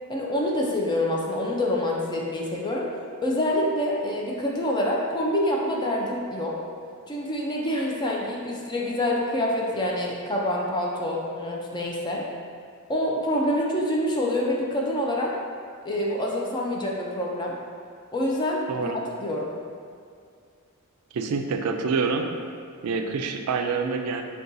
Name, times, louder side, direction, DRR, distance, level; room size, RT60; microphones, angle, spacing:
voice 1, 0.1-2.9 3.2-6.6 7.1-12.3 12.9-15.3 15.8-17.6 18.1-18.9 19.2-19.5, left 1 dB, 20° left, -3 dB, 0.4 m, -26 dB
voice 2, 21.1-22.3 22.8-24.2, right 4 dB, 75° right, 5 dB, 0.4 m, -26 dB
6.5 x 2.3 x 2.6 m, 2.3 s
head